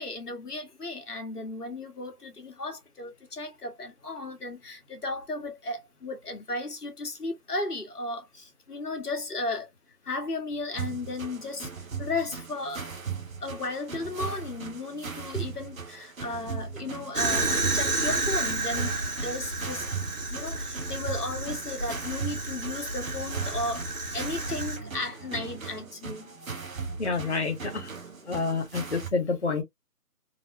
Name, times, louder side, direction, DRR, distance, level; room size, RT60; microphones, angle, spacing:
voice 1, 0.0-9.7 10.0-11.7 12.0-12.8 13.4-19.9 20.3-27.0, left 2 dB, 80° left, 1.5 m, -35 dB
sound 1, 10.8-29.1, right 5 dB, 60° right, 0.9 m, -38 dB
Fire, 17.1-24.8, right 2 dB, 80° right, 1.6 m, -31 dB
voice 2, 27.0-27.9 28.3-29.6, left 4 dB, 45° left, 0.8 m, -28 dB
4.0 x 2.0 x 2.6 m
figure-of-eight pair, 165°, 45 cm